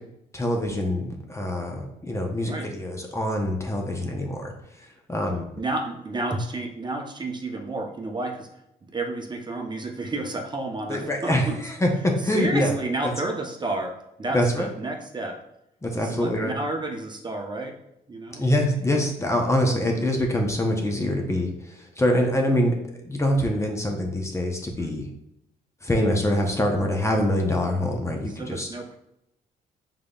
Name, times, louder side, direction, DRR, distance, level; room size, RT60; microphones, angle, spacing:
voice 1, 0.3-5.4 10.9-12.7 14.3-14.7 15.8-16.5 18.4-22.7 23.0-25.1 25.8-28.7, left 1 dB, 15° left, 2 dB, 0.8 m, -25 dB
voice 2, 5.6-8.5 8.8-11.6 12.2-13.9 14.2-15.4 16.0-17.8 18.1-18.4 24.8-24.9 28.4-29.0, right 2 dB, 25° right, 2 dB, 0.8 m, -31 dB
5.0 x 3.8 x 2.4 m, 0.82 s
supercardioid pair, 65°, 16 cm